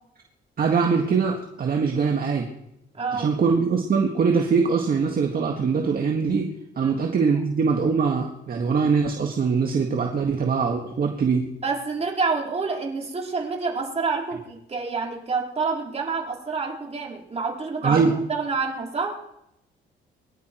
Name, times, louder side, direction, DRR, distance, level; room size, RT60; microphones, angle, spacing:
voice 1, 0.6-2.5 3.1-11.4 17.8-18.1, right 5 dB, 50° right, 1 dB, 1.9 m, -22 dB
voice 2, 2.9-3.3 6.8-6.9 11.6-19.2, right 4 dB, 30° right, -1 dB, 4.1 m, -28 dB
23.5 x 11.5 x 4.6 m, 0.83 s
cardioid pair, 90°, 20 cm